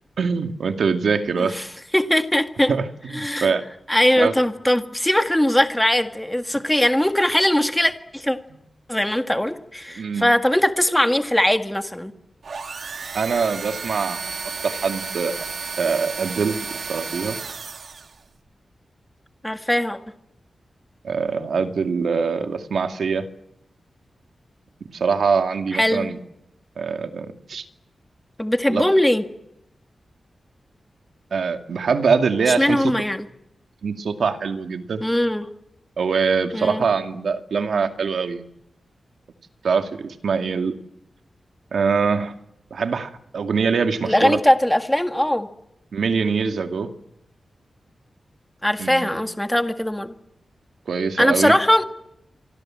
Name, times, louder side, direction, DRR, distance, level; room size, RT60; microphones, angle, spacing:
voice 1, 0.2-1.6 2.7-3.6 4.2-4.3 10.0-10.3 13.1-14.2 14.6-15.3 15.8-17.4 21.0-23.3 24.9-26.2 26.8-27.6 28.7-28.9 31.3-32.9 33.8-35.0 36.0-38.4 39.6-40.8 41.7-42.3 42.7-44.4 45.9-46.9 48.8-49.2 50.9-51.5, right 5 dB, 70° right, 7 dB, 2.3 m, -23 dB
voice 2, 1.4-1.7 1.9-2.7 3.1-3.5 3.9-8.4 8.9-12.1 19.4-20.0 25.7-26.1 28.4-29.2 32.5-33.3 35.0-35.5 36.5-36.9 44.0-45.5 48.6-50.1 51.2-51.8, left 1 dB, 5° left, 7 dB, 1.7 m, -20 dB
sound 1, 12.4-18.2, right 5 dB, 55° right, 2.0 m, -32 dB
28.0 x 25.0 x 7.7 m, 0.81 s
wide cardioid pair, 165°, 0 cm